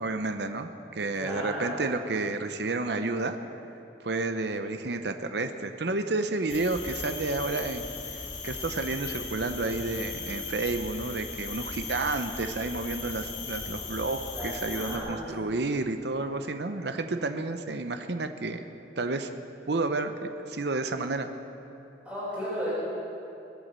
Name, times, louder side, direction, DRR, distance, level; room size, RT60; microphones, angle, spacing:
voice 1, 0.0-3.4 4.0-18.6 19.0-19.3 19.7-21.3, right 3 dB, 65° right, 8 dB, 0.8 m, -31 dB
voice 2, 1.1-1.8 14.3-15.3 22.0-22.7, equal, 5° right, -13 dB, 4.8 m, -34 dB
sound 1, 6.5-15.0, left 4 dB, 80° left, 2.6 m, -38 dB
20.5 x 8.2 x 7.6 m, 2.9 s
head